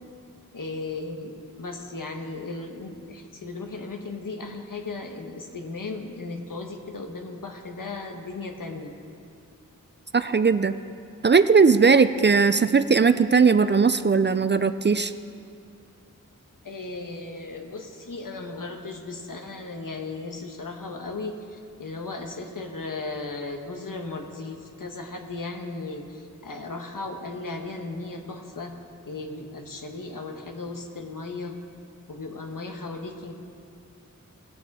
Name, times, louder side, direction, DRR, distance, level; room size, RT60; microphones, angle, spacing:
voice 1, 0.5-8.9 16.6-28.7 29.0-31.5 32.1-33.3, left 3 dB, 70° left, 3 dB, 1.2 m, -36 dB
voice 2, 10.1-10.7 11.2-15.1, right 5 dB, 35° right, 12 dB, 0.4 m, -18 dB
19.0 x 6.7 x 4.2 m, 2.4 s
wide cardioid pair, 50°, 33 cm